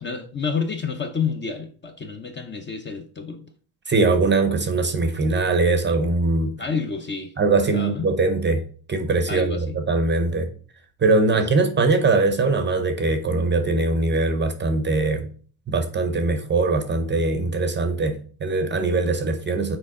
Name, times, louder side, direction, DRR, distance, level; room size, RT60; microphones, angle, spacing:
voice 1, 0.0-3.5 6.6-7.3 7.7-8.1 9.3-9.8 11.3-11.4, left 5 dB, 25° left, 0.8 m, -29 dB
voice 2, 3.9-6.5 7.4-8.6 8.9-10.5 11.0-15.2 15.7-19.8, right 3 dB, 20° right, 0.7 m, -21 dB
6.6 x 4.5 x 3.7 m
cardioid pair, 125°, 49 cm